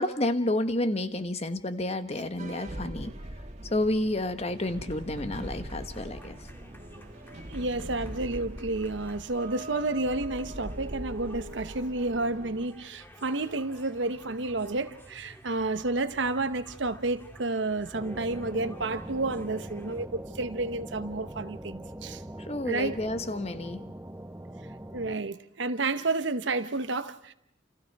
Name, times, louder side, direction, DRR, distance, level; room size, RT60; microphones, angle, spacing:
voice 1, 0.0-3.1 3.7-6.4 22.4-23.9, left 1 dB, 35° left, 1.3 m, -30 dB
sound 1, 2.4-12.7, right 1 dB, 35° right, 2.2 m, -41 dB
sound 2, 4.5-20.1, equal, 10° left, 2.1 m, -52 dB
voice 2, 7.5-22.2 22.6-23.0 24.9-27.3, right 2 dB, 75° right, 1.0 m, -31 dB
sound 3, 17.9-25.2, right 1 dB, 10° right, 0.8 m, -42 dB
30.0 x 28.5 x 4.7 m
head